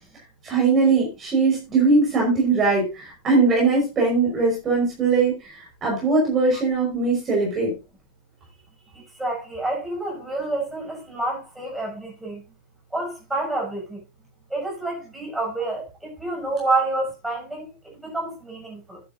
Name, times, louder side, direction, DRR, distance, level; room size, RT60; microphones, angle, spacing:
voice 1, 0.4-7.7, right 3 dB, 25° right, 5.7 m, -20 dB
voice 2, 8.9-12.4 12.9-14.0 14.5-19.0, right 2 dB, 5° right, 7.6 m, -28 dB
11.5 x 11.0 x 2.8 m
figure-of-eight pair, 90°, 0 cm